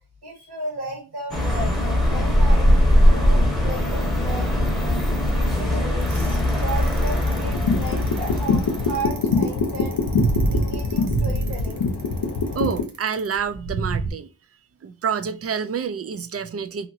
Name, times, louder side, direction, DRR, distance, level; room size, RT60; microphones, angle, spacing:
voice 1, 0.2-10.0 10.5-11.8, right 2 dB, 85° right, 1.4 m, -35 dB
sound 1, 1.3-9.1, left 1 dB, ahead, 1.0 m, -20 dB
Bicycle, 6.0-14.1, right 3 dB, 60° right, 0.7 m, -27 dB
sound 2, 7.3-12.8, left 4 dB, 85° left, 0.7 m, -24 dB
voice 2, 12.5-14.3 14.8-16.9, right 6 dB, 40° right, 0.4 m, -28 dB
2.8 x 2.8 x 2.5 m
wide cardioid pair, 70°, 39 cm